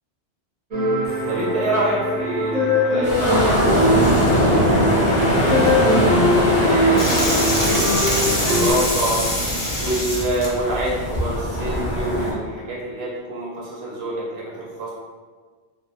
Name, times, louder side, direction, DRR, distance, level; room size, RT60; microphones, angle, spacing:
sound 1, 0.7-8.7, left 1 dB, 45° right, 0.5 m, -21 dB
voice 1, 1.3-4.7 5.1-9.2 9.8-14.9, right 1 dB, 70° right, -6 dB, 0.8 m, -27 dB
sound 2, 3.0-12.3, equal, 50° left, 0.7 m, -22 dB
sound 3, 7.0-12.1, equal, 30° left, 0.3 m, -25 dB
2.4 x 2.3 x 2.7 m, 1.5 s
omnidirectional pair, 1.1 m